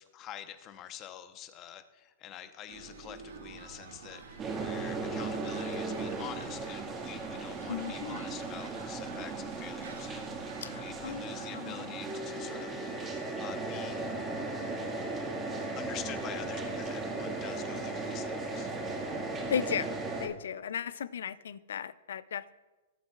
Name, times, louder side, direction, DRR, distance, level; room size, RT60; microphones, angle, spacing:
voice 1, 0.0-14.1 15.7-18.7, left 11 dB, 35° left, 9 dB, 0.9 m, -46 dB
sound 1, 2.7-11.9, right 5 dB, 85° right, 1.8 m, -50 dB
sound 2, 4.4-20.3, right 3 dB, 20° right, 1.8 m, -36 dB
voice 2, 7.7-8.2 10.6-12.0 19.5-19.9 20.2-22.6, left 8 dB, 80° left, 17 dB, 0.4 m, -36 dB
19.0 x 7.8 x 2.5 m, 1.2 s
hypercardioid pair, 130°, 0 cm